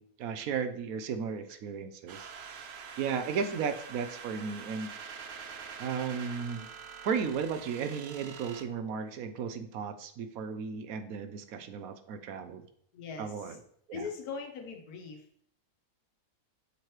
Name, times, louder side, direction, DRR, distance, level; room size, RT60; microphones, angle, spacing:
voice 1, 0.0-2.3 3.0-4.9 5.8-6.7 7.0-12.6 13.2-13.6 13.9-14.0, right 6 dB, 75° right, 9 dB, 1.1 m, -35 dB
sound 1, 2.1-8.6, right 6 dB, 60° right, 0.7 m, -45 dB
voice 2, 12.9-13.6 13.9-15.4, left 5 dB, 85° left, 4 dB, 1.5 m, -41 dB
6.6 x 3.2 x 4.5 m, 0.65 s
omnidirectional pair, 1.5 m